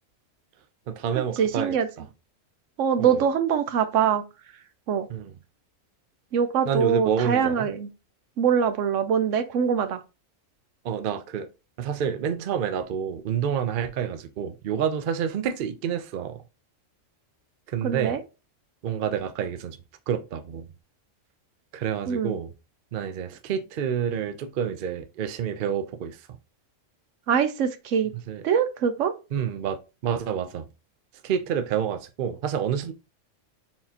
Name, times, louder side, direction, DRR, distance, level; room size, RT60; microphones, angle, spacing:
voice 1, 0.9-2.1 3.0-3.2 5.1-5.4 6.6-7.7 10.8-11.5 11.8-16.4 17.7-18.2 18.8-19.8 20.1-20.7 21.7-22.5 22.9-26.4 28.3-28.4 29.3-30.7 31.2-32.9, right 8 dB, 55° right, 0.6 m, -28 dB
voice 2, 1.4-1.9 2.8-4.2 4.9-5.1 6.3-7.9 8.4-10.0 17.8-18.2 22.1-22.4 27.3-28.1 28.4-29.1, right 7 dB, 75° right, 1.0 m, -23 dB
4.5 x 3.6 x 2.8 m
omnidirectional pair, 1.3 m